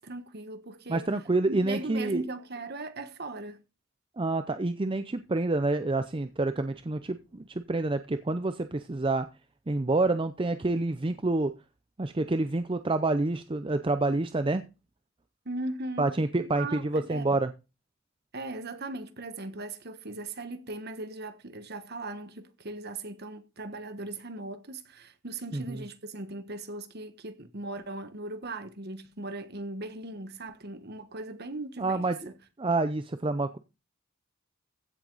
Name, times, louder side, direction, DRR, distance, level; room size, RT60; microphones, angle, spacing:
voice 1, 0.0-1.1 1.4-3.6 15.4-16.1 16.5-17.4 18.3-32.3, right 2 dB, 45° right, 1.4 m, -39 dB
voice 2, 0.9-2.2 4.2-9.3 9.7-11.5 12.0-14.6 16.0-17.5 25.5-25.8 31.8-32.3 32.6-33.6, right 2 dB, 25° right, 0.5 m, -28 dB
15.5 x 7.8 x 4.0 m
head